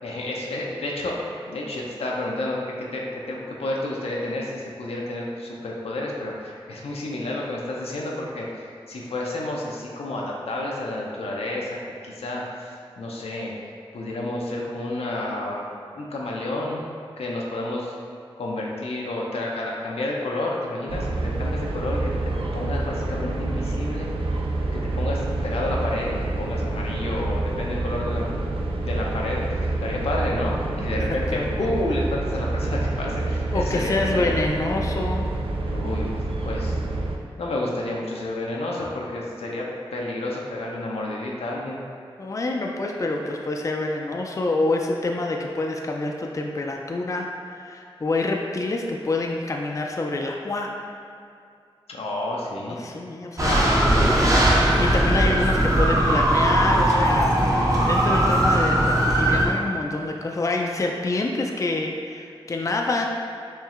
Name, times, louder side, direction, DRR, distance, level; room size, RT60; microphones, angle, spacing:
voice 1, 0.0-11.8 12.0-13.5 13.9-15.6 15.9-16.9 17.2-17.9 18.4-24.4 24.7-28.3 28.8-34.4 35.7-36.1 36.4-36.8 37.4-39.7 39.9-41.8 51.9-52.8 53.4-54.3 54.8-54.9, left 1 dB, 85° left, -3 dB, 0.5 m, -30 dB
sound 1, 20.9-37.2, right 2 dB, 65° right, 0.4 m, -27 dB
voice 2, 33.5-35.3 42.2-51.0 52.8-53.8 54.8-63.1, left 2 dB, 35° left, 1 dB, 0.3 m, -27 dB
sound 2, 53.4-59.5, right 1 dB, 35° right, 0.7 m, -19 dB
4.4 x 3.1 x 2.4 m, 2.4 s
cardioid pair, 50°, 10 cm